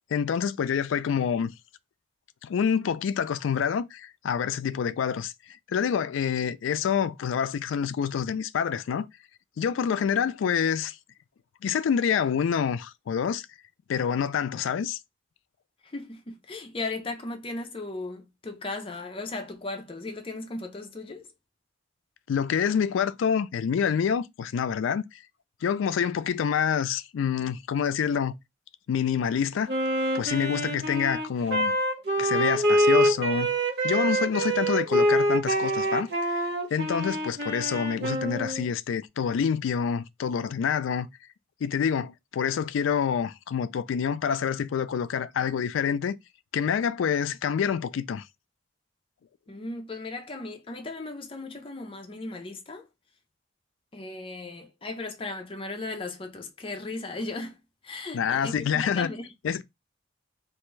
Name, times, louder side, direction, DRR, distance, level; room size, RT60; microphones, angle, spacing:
voice 1, 0.1-1.5 2.4-5.3 5.7-9.1 9.6-11.0 11.6-13.5 13.9-15.0 22.3-25.2 25.6-28.3 28.9-29.7 30.1-31.7 32.2-33.5 33.8-36.3 36.7-41.1 41.6-46.2 46.5-48.2 58.1-59.1 59.4-59.6, left 7 dB, 85° left, 0.3 m, -27 dB
voice 2, 15.8-21.3 49.5-52.9 53.9-57.6 57.8-59.3, left 2 dB, 30° left, 0.5 m, -36 dB
Wind instrument woodwind instrument, 29.7-38.7, right 1 dB, 55° right, 1.0 m, -25 dB
3.3 x 2.5 x 3.1 m
head